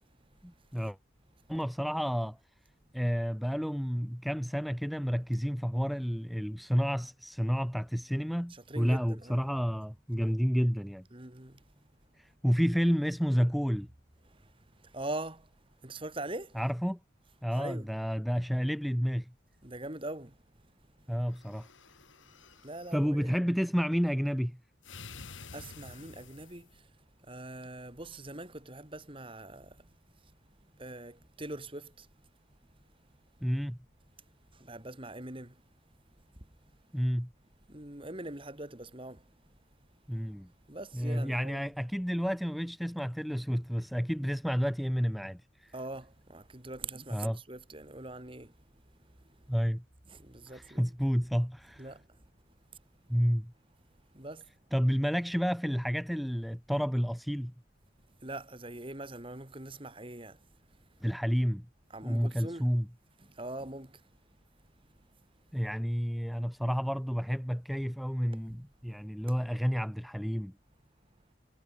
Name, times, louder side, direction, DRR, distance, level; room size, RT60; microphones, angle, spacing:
voice 1, 0.4-1.0 1.5-2.4 2.9-11.0 12.2-13.9 16.5-17.0 17.4-19.3 21.1-21.7 22.9-24.6 33.4-33.8 36.9-37.3 40.1-40.5 40.9-45.7 47.1-47.4 49.5-49.8 50.5-51.9 53.1-53.5 54.7-57.5 61.0-61.7 62.0-62.9 65.5-70.5, equal, ahead, 1.0 m, -30 dB
voice 2, 8.5-9.5 11.1-11.6 14.3-15.5 15.8-16.6 17.6-17.9 19.6-20.4 21.0-21.1 22.6-23.3 25.0-26.9 27.2-30.0 30.2-30.3 30.6-32.1 34.5-35.6 36.3-36.5 37.7-39.3 40.7-41.7 45.7-48.5 49.0-49.5 50.1-50.9 51.8-52.1 54.1-54.5 58.2-60.5 61.9-62.7 63.2-64.0, right 2 dB, 25° right, 2.6 m, -43 dB
sound 1, 21.2-23.0 24.8-26.8, left 4 dB, 85° left, 2.5 m, -50 dB
head